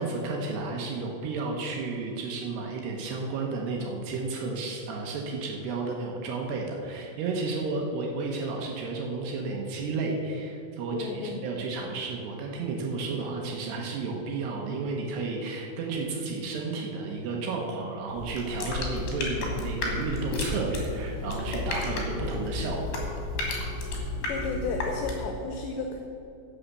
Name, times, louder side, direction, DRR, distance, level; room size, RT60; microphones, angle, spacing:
voice 1, 0.0-23.2, right 3 dB, 75° right, 0 dB, 2.7 m, -32 dB
voice 2, 10.9-11.5 24.3-26.0, left 4 dB, 75° left, 3 dB, 2.7 m, -33 dB
sound 1, 18.1-25.4, left 2 dB, 60° left, 3.2 m, -32 dB
10.5 x 7.1 x 7.3 m, 3.0 s
omnidirectional pair, 5.7 m